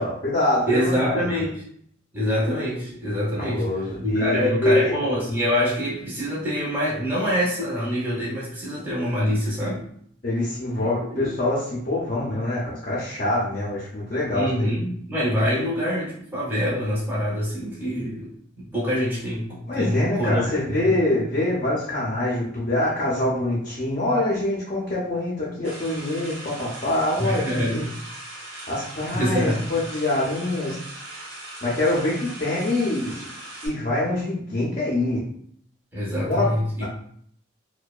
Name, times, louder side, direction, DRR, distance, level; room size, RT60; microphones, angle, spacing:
voice 1, 0.0-1.2 3.4-4.9 10.2-14.7 19.7-27.9 28.7-30.8 31.6-33.2 33.6-35.2 36.3-36.5, left 1 dB, 40° left, -6 dB, 0.5 m, -25 dB
voice 2, 0.7-1.6 2.1-3.7 4.0-9.8 11.1-11.3 14.3-20.9 27.2-27.8 29.1-29.6 35.9-36.8, equal, 10° right, -8 dB, 0.7 m, -25 dB
sound 1, 25.6-33.7, right 1 dB, 75° right, 0.9 m, -39 dB
2.7 x 2.1 x 2.3 m, 0.65 s
head